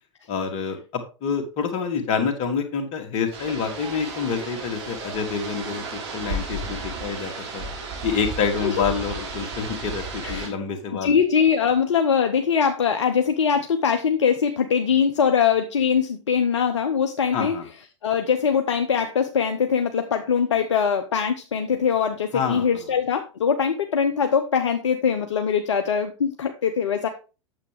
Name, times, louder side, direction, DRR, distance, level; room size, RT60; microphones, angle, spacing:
voice 1, 0.3-7.6 8.0-11.1 17.3-17.6 22.3-22.7, left 6 dB, 40° left, 4 dB, 2.2 m, -27 dB
sound 1, 3.3-10.5, right 3 dB, 60° right, 3.3 m, -33 dB
voice 2, 10.9-17.5 18.0-27.1, left 7 dB, 65° left, 6 dB, 0.9 m, -22 dB
9.0 x 7.2 x 3.5 m, 0.32 s
figure-of-eight pair, 90°, 16 cm